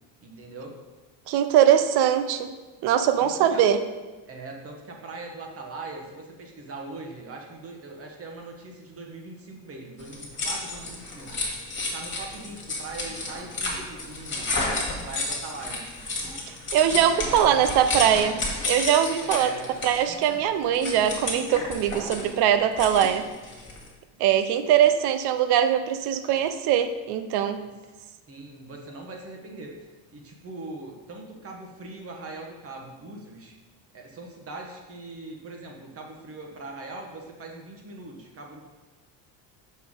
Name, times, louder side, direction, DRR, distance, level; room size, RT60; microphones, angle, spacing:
voice 1, 0.2-0.8 3.2-3.6 4.3-11.5 11.9-14.5 14.9-15.9 17.0-17.9 19.2-19.7 28.3-29.8 30.1-33.6 33.9-38.6, right 2 dB, 35° right, 1 dB, 1.2 m, -41 dB
voice 2, 1.3-2.5 2.8-3.8 16.7-19.5 19.8-23.3 24.2-27.6, right 10 dB, 70° right, 10 dB, 0.6 m, -22 dB
sound 1, 10.0-23.9, left 2 dB, 30° left, 1.9 m, -32 dB
sound 2, 12.4-12.6 13.0-13.3 13.7-13.9 14.3-14.5 14.9-15.2 15.6-15.8 16.2-16.5 16.9-17.1 17.5-17.9 18.1-18.5 18.8-19.2 19.4-19.8 20.1-22.4, equal, 15° right, 0.9 m, -46 dB
6.4 x 5.7 x 3.8 m, 1.3 s
cardioid pair, 130°, 41 cm